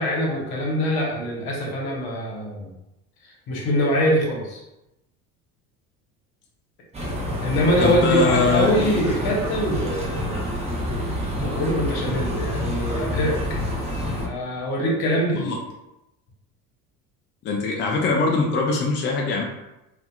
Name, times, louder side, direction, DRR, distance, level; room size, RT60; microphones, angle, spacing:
voice 1, 0.0-2.7 3.5-4.6 7.4-10.4 11.4-13.4 14.2-15.6, equal, 55° left, -2 dB, 1.1 m, -23 dB
sound 1, 6.9-14.3, equal, 15° right, 0.7 m, -27 dB
voice 2, 7.8-8.7 15.3-15.5 17.4-19.4, left 3 dB, 25° left, -1 dB, 0.4 m, -22 dB
2.7 x 2.4 x 2.3 m, 0.95 s
hypercardioid pair, 70°, 45 cm